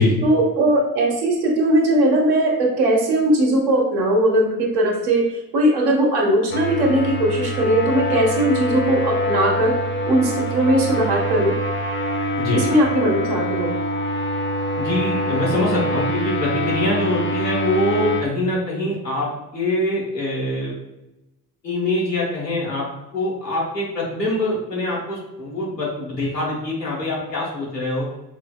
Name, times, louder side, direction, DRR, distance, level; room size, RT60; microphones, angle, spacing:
voice 1, 0.2-5.2 5.5-9.7 10.1-11.5 12.5-13.8, right 1 dB, 55° right, -1 dB, 1.0 m, -19 dB
sound 1, 6.5-18.2, equal, 25° left, 0.6 m, -24 dB
voice 2, 12.4-12.7 14.8-20.7 21.6-22.9 23.1-28.1, left 1 dB, 90° left, -5 dB, 0.9 m, -24 dB
4.7 x 2.0 x 2.3 m, 0.92 s
figure-of-eight pair, 55°, 47 cm